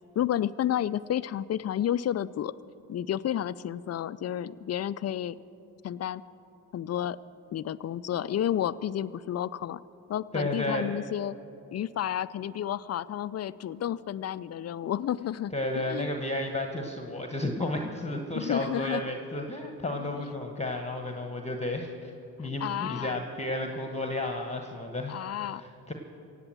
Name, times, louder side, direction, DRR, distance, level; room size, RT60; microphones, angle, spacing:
voice 1, 0.2-2.5 2.9-5.4 5.8-6.2 6.7-7.2 7.5-9.8 10.1-11.4 11.7-15.5 15.9-16.1 18.4-19.1 22.6-23.1 25.1-25.6, left 11 dB, 35° left, 17 dB, 0.4 m, -31 dB
voice 2, 10.3-11.1 15.5-22.1 22.4-25.9, left 1 dB, 15° left, 4 dB, 1.2 m, -32 dB
16.5 x 8.4 x 7.5 m, 2.7 s
hypercardioid pair, 50°, 44 cm